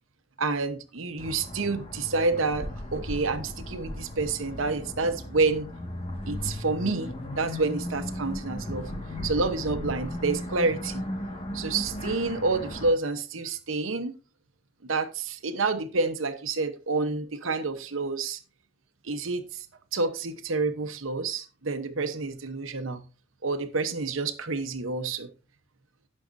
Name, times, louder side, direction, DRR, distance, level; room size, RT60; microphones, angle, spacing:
voice 1, 0.4-5.7 6.3-8.9 9.2-11.1 11.5-14.1 14.8-18.4 19.0-19.7 19.9-23.0 23.4-25.3, right 3 dB, 85° right, 1.0 m, -28 dB
sound 1, 1.2-12.9, left 1 dB, 30° left, 1.7 m, -36 dB
16.5 x 6.4 x 2.6 m
head